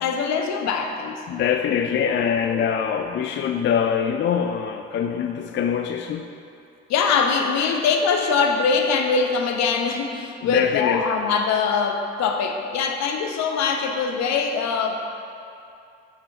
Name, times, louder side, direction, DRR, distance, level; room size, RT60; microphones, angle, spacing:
voice 1, 0.0-1.2 2.0-2.2 6.9-15.0, left 5 dB, 60° left, 4 dB, 0.8 m, -22 dB
voice 2, 1.3-6.3 10.4-11.1, left 8 dB, 40° left, 6 dB, 0.4 m, -24 dB
8.0 x 6.7 x 3.6 m, 2.6 s
hypercardioid pair, 45°, 30 cm